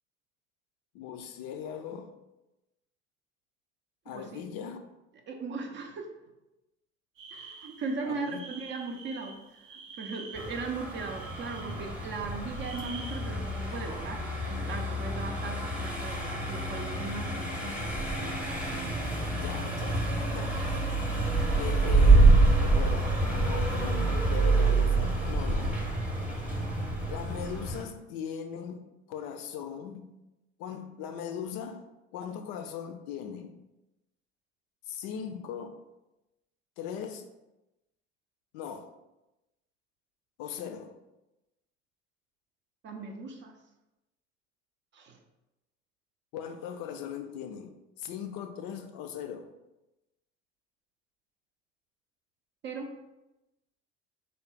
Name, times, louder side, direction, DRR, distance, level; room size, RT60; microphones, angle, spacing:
voice 1, 0.9-2.1 4.1-4.8 8.0-8.4 19.3-21.1 21.6-25.8 27.1-30.1 30.6-31.8 32.1-33.6 34.9-35.8 36.8-37.2 38.5-38.9 40.4-40.9 46.3-49.5, left 8 dB, 55° left, 6 dB, 0.5 m, -39 dB
voice 2, 4.1-4.4 5.3-6.1 7.3-17.9 42.8-43.5 44.9-45.2 52.6-52.9, right 3 dB, 30° right, 3 dB, 0.5 m, -38 dB
sound 1, 7.2-12.1 12.4-14.0, right 5 dB, 85° right, 0.6 m, -48 dB
Car passing by, 10.3-27.8, right 2 dB, 5° right, 0.9 m, -27 dB
3.4 x 2.0 x 3.8 m, 0.97 s
figure-of-eight pair, 65°, 37 cm